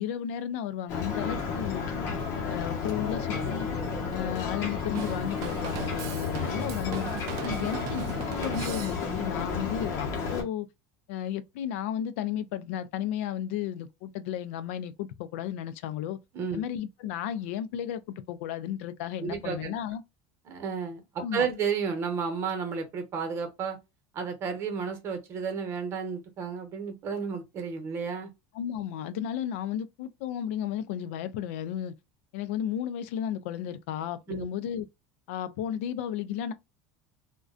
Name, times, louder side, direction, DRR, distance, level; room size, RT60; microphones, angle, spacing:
voice 1, 0.0-1.8 2.4-3.7 4.1-7.1 7.4-10.7 11.1-16.2 16.5-20.0 21.2-21.5 28.5-32.0 32.3-34.9 35.3-36.5, left 10 dB, 85° left, 0.4 m, -33 dB
Ocean, 0.9-10.4, left 5 dB, 50° left, 0.8 m, -32 dB
Drum kit / Drum, 4.9-9.3, right 10 dB, 55° right, 0.3 m, -39 dB
voice 2, 19.2-19.7 20.5-23.8 24.1-28.3 34.3-34.4, right 6 dB, 40° right, 0.8 m, -32 dB
2.4 x 2.2 x 2.4 m
supercardioid pair, 145°, 7 cm